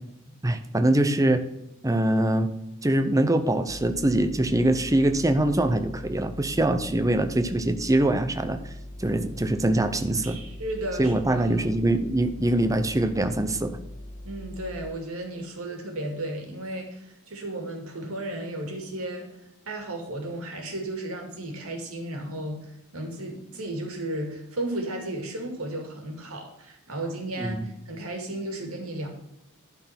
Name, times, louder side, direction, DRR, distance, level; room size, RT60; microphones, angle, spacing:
voice 1, 0.4-1.4 1.8-2.5 2.8-8.6 9.0-10.4 11.0-13.8 27.4-27.7, right 1 dB, 15° right, 8 dB, 0.7 m, -23 dB
sound 1, 3.7-14.9, left 1 dB, 60° left, 1.5 m, -41 dB
voice 2, 10.2-11.7 14.2-19.3 19.7-29.1, right 1 dB, 75° right, 2 dB, 2.3 m, -34 dB
11.5 x 4.6 x 5.9 m, 0.85 s
head